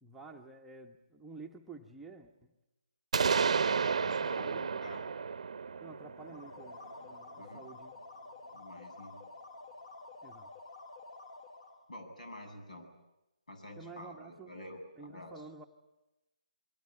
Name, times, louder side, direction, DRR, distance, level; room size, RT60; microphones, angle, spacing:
voice 1, 0.0-2.3 4.1-4.8 5.8-7.9 10.2-10.5 13.8-14.5 15.0-15.7, right 3 dB, 5° right, 0 dB, 1.1 m, -50 dB
sound 1, 3.1-6.9, right 5 dB, 55° right, 0.9 m, -32 dB
voice 2, 3.7-5.1 7.4-7.6 8.5-9.2 11.9-12.9 13.5-15.4, left 1 dB, 75° left, 6 dB, 7.7 m, -48 dB
sound 2, 6.1-11.8, left 3 dB, 50° left, 6.4 m, -50 dB
28.0 x 23.0 x 8.6 m, 0.95 s
figure-of-eight pair, 150°, 4 cm